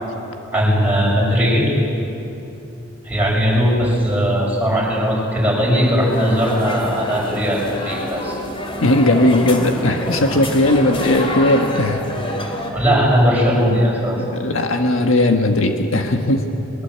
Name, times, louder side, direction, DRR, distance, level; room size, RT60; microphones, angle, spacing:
voice 1, 0.5-1.7 3.0-8.4 12.7-14.2, equal, 10° right, -4 dB, 7.2 m, -18 dB
sound 1, 5.7-12.7, left 1 dB, 25° left, 2.8 m, -27 dB
voice 2, 8.8-12.0 14.2-16.5, left 1 dB, 70° left, 4 dB, 1.5 m, -17 dB
22.5 x 22.5 x 8.3 m, 2.9 s
head